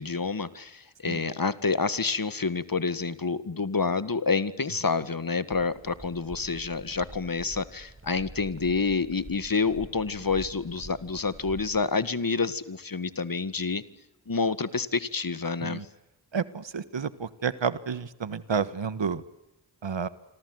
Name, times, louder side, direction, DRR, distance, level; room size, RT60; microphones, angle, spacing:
voice 1, 0.0-13.8 14.3-15.8, left 4 dB, 50° left, 14 dB, 1.8 m, -28 dB
sound 1, 5.5-11.8, right 2 dB, 30° right, 7.2 m, -46 dB
voice 2, 16.3-19.2 19.8-20.1, right 6 dB, 85° right, 15 dB, 1.5 m, -30 dB
27.5 x 26.0 x 8.0 m, 0.88 s
wide cardioid pair, 50°, 43 cm